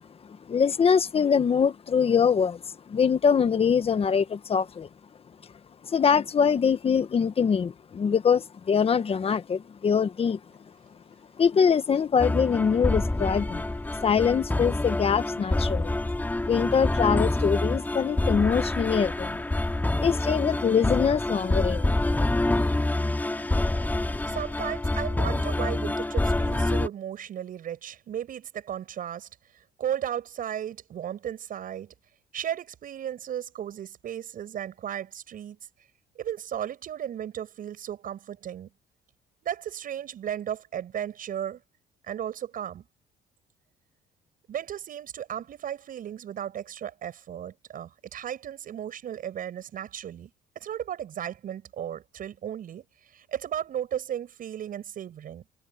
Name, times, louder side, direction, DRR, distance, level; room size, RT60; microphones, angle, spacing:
voice 1, 0.5-2.6 2.9-4.9 5.8-10.4 11.4-13.7 14.0-15.9 16.4-19.4 20.0-21.9, left 6 dB, 35° left, 1.4 m, -23 dB
sound 1, 12.2-26.9, left 2 dB, 10° left, 2.7 m, -27 dB
voice 2, 24.3-29.3 29.8-31.9 32.3-35.6 36.2-38.7 39.4-41.6 42.1-42.8 44.5-50.3 50.6-52.9 53.1-55.4, right 10 dB, 55° right, 7.1 m, -35 dB
cardioid pair, 110°, 17 cm